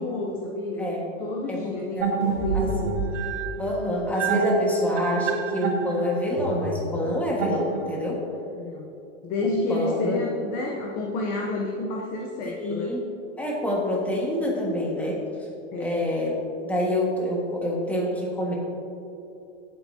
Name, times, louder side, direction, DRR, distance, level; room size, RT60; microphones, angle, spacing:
voice 1, 0.0-0.9 1.2-3.1 8.5-8.9 9.2-13.0 15.7-16.0, left 2 dB, 25° left, 0 dB, 0.7 m, -30 dB
voice 2, 1.5-2.1 2.5-2.7 3.6-8.2 9.7-10.2 12.4-13.0 13.4-15.2 15.8-16.3 16.6-18.5, left 1 dB, 5° left, -3 dB, 1.5 m, -27 dB
sound 1, 2.0-8.2, right 4 dB, 65° right, 2.2 m, -28 dB
16.0 x 8.3 x 2.7 m, 2.8 s
supercardioid pair, 155°, 38 cm